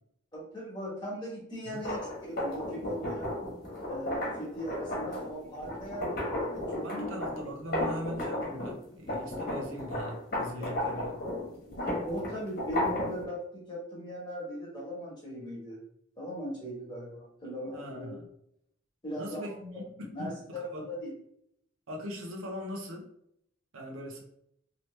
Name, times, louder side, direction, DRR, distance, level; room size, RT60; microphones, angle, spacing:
voice 1, 0.3-3.3 3.9-7.0 10.6-10.8 11.6-13.4 13.7-15.8 16.2-18.1 19.0-19.8 20.1-21.1, equal, 20° left, -5 dB, 1.2 m, -39 dB
sound 1, 1.7-8.8 9.1-13.2, left 1 dB, 50° left, 1.2 m, -34 dB
voice 2, 6.8-11.1 17.7-18.3 19.2-20.9 21.9-23.1 23.7-24.2, equal, 90° right, 0 dB, 0.8 m, -40 dB
3.0 x 2.9 x 3.1 m, 0.72 s
head